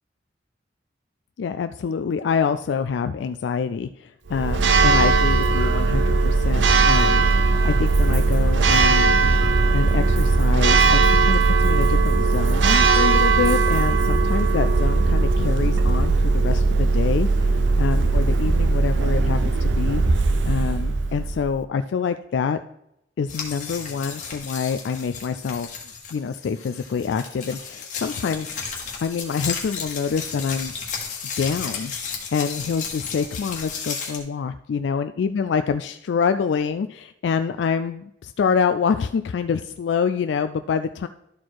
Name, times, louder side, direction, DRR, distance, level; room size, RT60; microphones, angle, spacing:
voice 1, 1.4-9.2 9.7-17.5 17.8-20.0 20.4-22.6 23.2-25.8 26.1-28.5 29.0-30.7 31.4-31.9 32.3-41.1, left 6 dB, 75° left, 9 dB, 0.3 m, -26 dB
Church bell, 4.3-21.5, right 3 dB, 80° right, 0.6 m, -19 dB
sound 1, 23.3-34.2, left 5 dB, 40° left, 1.5 m, -33 dB
12.0 x 4.3 x 4.6 m, 0.83 s
head